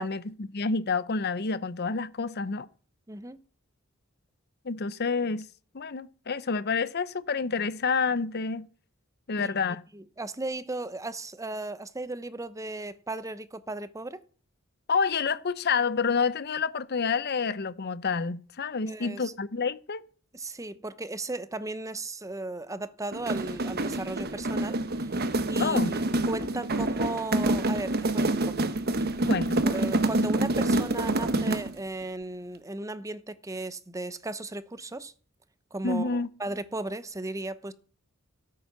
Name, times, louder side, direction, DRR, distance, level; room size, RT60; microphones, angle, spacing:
voice 1, 0.0-2.7 4.6-5.5 5.7-8.7 9.3-9.8 14.9-20.0 25.6-25.9 29.3-29.7 35.8-36.3, left 5 dB, 50° left, 0.8 m, -28 dB
voice 2, 3.1-3.4 9.4-9.5 9.9-14.2 18.8-19.3 20.3-28.5 29.0-29.2 29.7-35.1 35.7-37.7, right 2 dB, 15° right, 0.8 m, -36 dB
sound 1, 23.1-31.8, right 2 dB, 50° right, 1.1 m, -27 dB
16.0 x 8.8 x 6.0 m
head